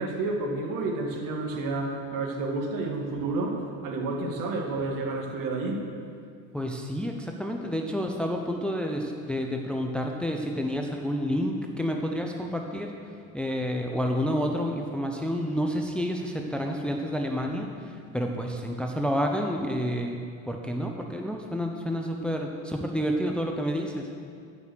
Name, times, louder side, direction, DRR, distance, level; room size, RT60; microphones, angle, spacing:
voice 1, 0.0-5.8, right 3 dB, 55° right, 2 dB, 2.0 m, -30 dB
voice 2, 6.5-12.9 13.3-20.2 20.5-24.1, equal, 5° left, 2 dB, 0.8 m, -29 dB
14.0 x 6.2 x 6.4 m, 2.3 s
supercardioid pair, 100°, 39 cm